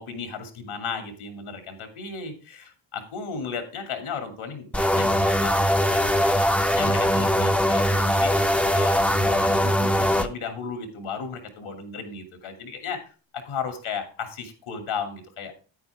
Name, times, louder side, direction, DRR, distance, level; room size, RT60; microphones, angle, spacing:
voice 1, 0.0-15.5, left 5 dB, 75° left, 6 dB, 2.7 m, -35 dB
sound 1, 4.7-10.3, equal, 5° left, 0.7 m, -21 dB
9.4 x 9.3 x 3.5 m, 0.37 s
cardioid pair, 95°, 49 cm